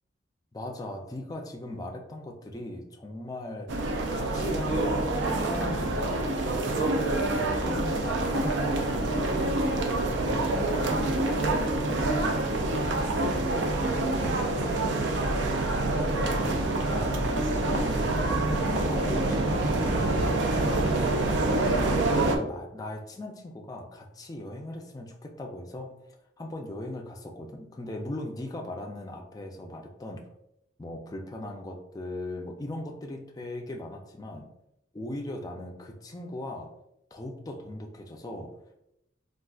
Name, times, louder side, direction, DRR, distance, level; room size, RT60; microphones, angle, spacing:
voice 1, 0.5-9.8 10.2-11.8 12.6-15.7 16.2-18.4 18.6-25.9 26.4-30.2 30.8-34.5 34.9-36.7 37.1-38.5, left 1 dB, 20° left, 2 dB, 0.3 m, -39 dB
sound 1, 3.7-22.4, right 2 dB, 80° right, 0.4 m, -26 dB
3.6 x 2.4 x 2.3 m, 0.82 s
head